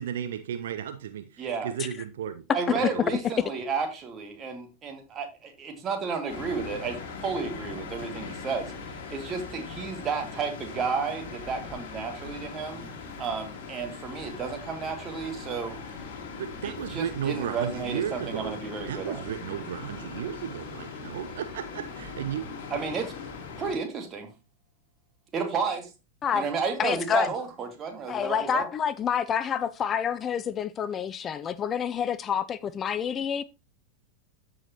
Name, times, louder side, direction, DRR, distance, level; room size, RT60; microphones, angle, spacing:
voice 1, 0.0-2.4 2.7-3.2 16.4-22.5, right 9 dB, 60° right, 0.6 m, -34 dB
voice 2, 1.4-1.7 2.5-8.7 9.1-12.9 13.2-15.8 16.6-19.2 22.7-23.1 23.6-24.3 25.3-25.9 26.3-28.7, right 5 dB, 25° right, 2.1 m, -32 dB
sound 1, 6.3-23.8, left 5 dB, 50° left, 2.0 m, -40 dB
voice 3, 26.8-27.3 28.1-33.4, left 8 dB, 25° left, 0.4 m, -28 dB
13.5 x 5.0 x 2.9 m
figure-of-eight pair, 90°, 0 cm